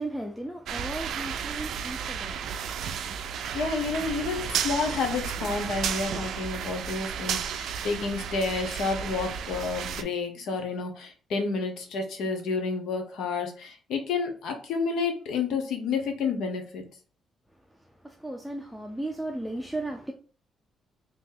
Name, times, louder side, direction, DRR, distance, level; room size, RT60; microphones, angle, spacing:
voice 1, 0.0-2.4 2.6-3.0 18.0-20.1, right 2 dB, ahead, 0.5 m, -35 dB
sound 1, 0.7-10.0, right 7 dB, 75° right, 0.3 m, -33 dB
voice 2, 3.5-16.9, left 4 dB, 80° left, 0.9 m, -30 dB
2.9 x 2.7 x 3.8 m
cardioid pair, 90°, 0 cm